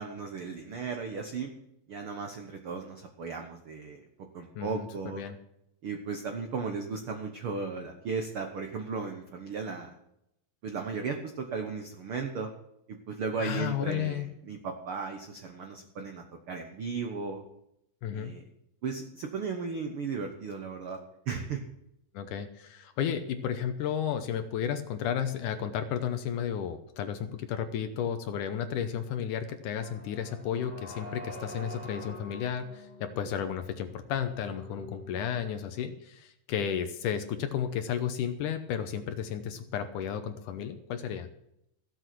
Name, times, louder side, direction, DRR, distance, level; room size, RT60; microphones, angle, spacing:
voice 1, 0.0-1.5 1.9-4.0 4.3-5.2 5.8-9.9 10.6-12.5 12.9-17.4 18.1-18.4 18.8-21.0 21.3-21.6, right 5 dB, 80° right, 4 dB, 1.2 m, -36 dB
voice 2, 4.6-5.4 13.4-14.3 18.0-18.3 22.1-41.3, left 8 dB, 75° left, 9 dB, 2.1 m, -33 dB
sound 1, 29.8-35.8, left 1 dB, 15° right, 6.8 m, -46 dB
15.5 x 7.9 x 6.1 m, 0.80 s
omnidirectional pair, 4.2 m